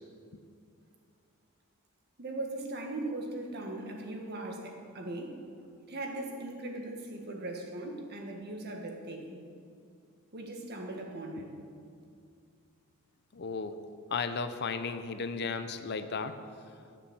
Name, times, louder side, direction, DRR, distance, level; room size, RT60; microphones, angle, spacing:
voice 1, 2.2-9.4 10.3-11.5, right 2 dB, 50° right, 2 dB, 1.5 m, -39 dB
voice 2, 13.3-13.8 14.1-16.4, left 5 dB, 50° left, 9 dB, 0.6 m, -34 dB
12.0 x 6.9 x 7.2 m, 2.3 s
head